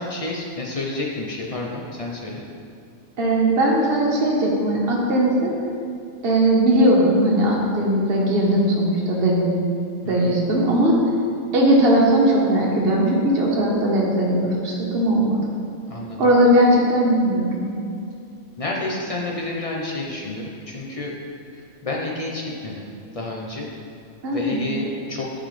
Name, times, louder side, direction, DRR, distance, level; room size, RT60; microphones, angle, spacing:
voice 1, 0.0-2.4 10.0-10.3 15.9-16.2 18.6-21.2 21.5-22.8 23.1-23.7 24.3-25.3, left 2 dB, 55° left, -2 dB, 0.4 m, -30 dB
voice 2, 3.2-5.5 6.2-9.5 10.1-11.0 11.5-15.3 16.2-17.6 24.2-24.7, right 1 dB, 50° right, -3 dB, 1.2 m, -19 dB
10.0 x 4.0 x 3.2 m, 2.4 s
omnidirectional pair, 1.4 m